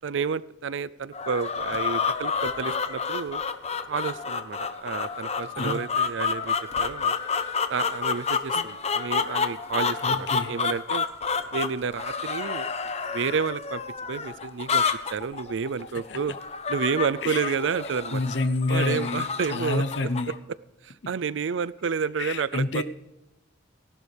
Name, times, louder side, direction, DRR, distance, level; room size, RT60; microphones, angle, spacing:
voice 1, 0.0-3.4 3.9-7.1 7.7-11.1 11.5-12.7 13.1-13.8 14.1-14.8 15.1-16.3 16.7-18.2 18.7-19.8 20.8-22.8, right 6 dB, 75° right, 19 dB, 0.4 m, -30 dB
sound 1, 1.1-20.4, left 5 dB, 35° left, 0.9 m, -29 dB
voice 2, 10.0-10.5 16.1-16.2 17.2-17.5 18.1-20.3 22.2-22.8, left 2 dB, 65° left, 11 dB, 0.8 m, -28 dB
18.5 x 11.5 x 3.4 m, 0.96 s
head